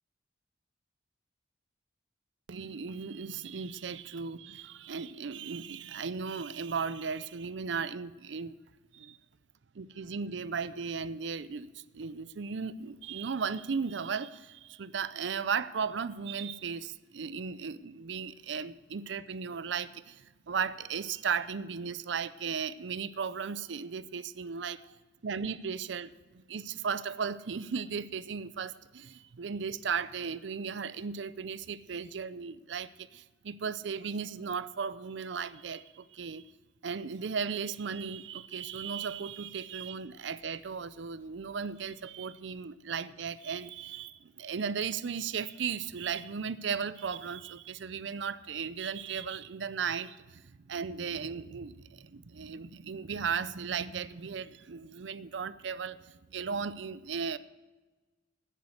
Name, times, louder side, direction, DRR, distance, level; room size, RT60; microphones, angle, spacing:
voice 1, 2.5-8.6 8.9-9.2 9.7-36.4 36.8-57.4, right 6 dB, 70° right, 16 dB, 0.5 m, -36 dB
13.0 x 10.0 x 6.5 m, 1.3 s
head